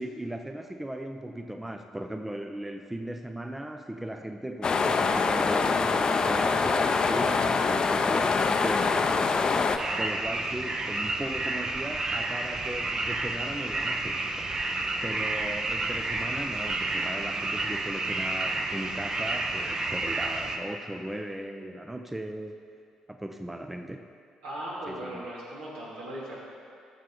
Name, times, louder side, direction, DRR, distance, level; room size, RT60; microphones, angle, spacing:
voice 1, 0.0-22.6 23.1-24.1 24.9-25.2, right 1 dB, 10° right, 6 dB, 0.6 m, -38 dB
sound 1, 4.6-9.8, left 4 dB, 40° left, 0.6 m, -24 dB
sound 2, 9.8-20.6, right 2 dB, 35° right, 1.0 m, -30 dB
voice 2, 24.4-26.4, right 1 dB, 75° right, -7 dB, 2.7 m, -38 dB
14.5 x 6.5 x 3.9 m, 2.4 s
hypercardioid pair, 50°, 2 cm